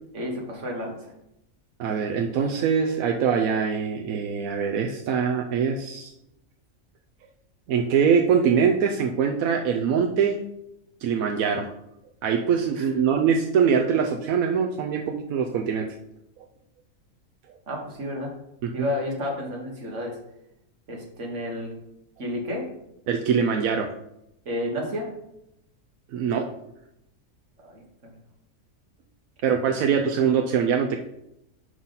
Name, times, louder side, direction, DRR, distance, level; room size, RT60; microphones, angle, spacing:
voice 1, 0.1-1.0 12.8-12.9 17.7-18.3 18.7-20.2 20.9-21.7 22.2-22.7 24.5-25.1 27.6-28.1 29.5-29.6, left 1 dB, 60° right, 0 dB, 1.9 m, -31 dB
voice 2, 1.8-6.1 7.7-10.4 11.0-11.7 12.2-15.8 18.6-18.7 23.1-23.9 26.1-26.4 29.4-31.0, right 6 dB, 85° right, 2 dB, 1.1 m, -23 dB
6.3 x 5.6 x 4.0 m, 0.82 s
omnidirectional pair, 1.4 m